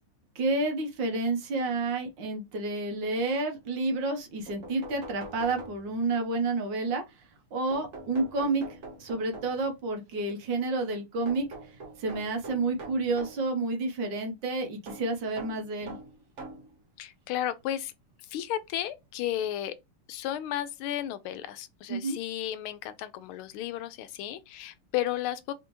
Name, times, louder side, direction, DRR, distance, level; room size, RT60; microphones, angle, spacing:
voice 1, 0.3-7.0 7.5-8.7 9.0-11.5 12.0-16.0 21.9-22.2, right 3 dB, 65° right, 1.6 m, -30 dB
sound 1, 4.5-6.2 7.7-9.8 11.3-13.5 14.9-16.7 17.6-17.7 19.0-19.1 19.4-19.5, right 2 dB, 45° right, 1.0 m, -44 dB
voice 2, 17.0-17.9 18.3-19.8 20.1-25.5, left 12 dB, 85° left, 1.4 m, -33 dB
4.1 x 3.4 x 3.0 m
omnidirectional pair, 2.3 m